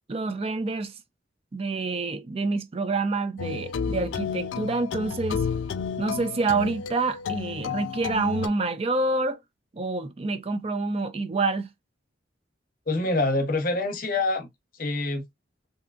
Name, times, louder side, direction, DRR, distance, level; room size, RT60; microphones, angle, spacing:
voice 1, 0.1-0.9 1.5-5.4 6.0-9.4 9.7-11.7, right 3 dB, 30° right, 0.4 m, -27 dB
sound 1, 3.4-8.5, left 6 dB, 85° left, 0.4 m, -31 dB
voice 2, 12.9-14.5 14.8-15.2, left 2 dB, 50° left, 0.8 m, -25 dB
3.6 x 2.7 x 2.4 m
head